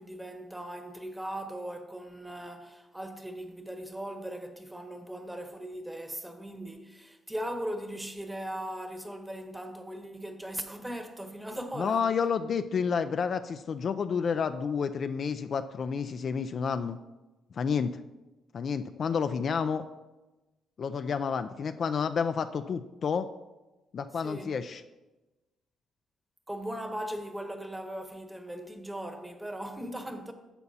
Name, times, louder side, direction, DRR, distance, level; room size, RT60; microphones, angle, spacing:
voice 1, 0.0-12.1 24.1-24.5 26.5-30.3, right 1 dB, 10° right, 1.0 m, -39 dB
voice 2, 11.8-17.0 17.5-17.9 18.5-19.8 20.8-23.3 23.9-24.8, left 6 dB, 50° left, 0.3 m, -30 dB
11.0 x 6.9 x 2.8 m
cardioid pair, 90°, 0 cm